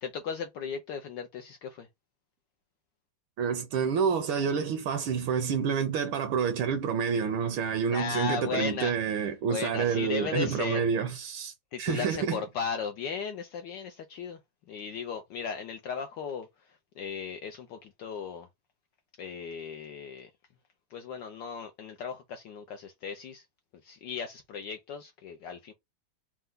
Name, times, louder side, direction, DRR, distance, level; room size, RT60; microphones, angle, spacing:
voice 1, 0.0-1.9 7.9-9.0 9.5-10.9 11.7-14.4 14.7-18.5 19.2-20.3 20.9-23.4 23.8-25.7, left 6 dB, 75° left, 1.0 m, -36 dB
voice 2, 3.4-12.4, right 6 dB, 75° right, 1.4 m, -28 dB
4.5 x 2.2 x 3.6 m
omnidirectional pair, 2.4 m